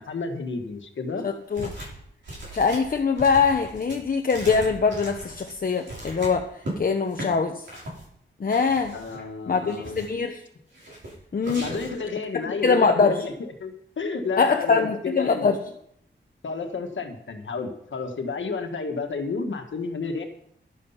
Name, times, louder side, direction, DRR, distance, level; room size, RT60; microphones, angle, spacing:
voice 1, 0.0-1.3 8.9-10.1 11.6-15.5 16.4-20.2, left 4 dB, 75° left, 5 dB, 1.6 m, -31 dB
voice 2, 1.2-1.7 2.5-6.5 6.8-7.7 8.4-8.9 9.5-10.4 11.3-11.7 12.5-13.2 14.4-15.6, left 5 dB, 45° left, 5 dB, 0.9 m, -23 dB
sound 1, 1.5-6.8 7.1-7.3 7.6-8.0 8.5-9.2 9.6-10.2 10.7-11.1 11.4-12.0, right 1 dB, 70° right, 6.1 m, -38 dB
12.0 x 9.9 x 5.7 m, 0.70 s
wide cardioid pair, 135°, 20 cm